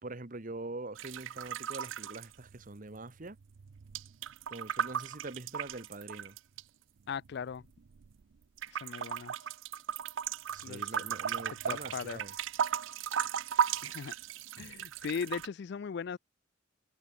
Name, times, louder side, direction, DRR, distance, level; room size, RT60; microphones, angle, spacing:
voice 1, 0.0-3.4 4.5-6.4 10.5-12.3 14.6-14.7, right 2 dB, 40° right, 1.2 m, -44 dB
sound 1, 0.9-3.0 3.3-6.6 7.2-8.2 8.6-15.5, right 8 dB, 70° right, 0.5 m, -36 dB
voice 2, 7.1-7.6 8.7-9.3 10.6-10.8 11.7-12.2 13.8-14.1 14.6-16.2, left 6 dB, 55° left, 0.4 m, -38 dB
head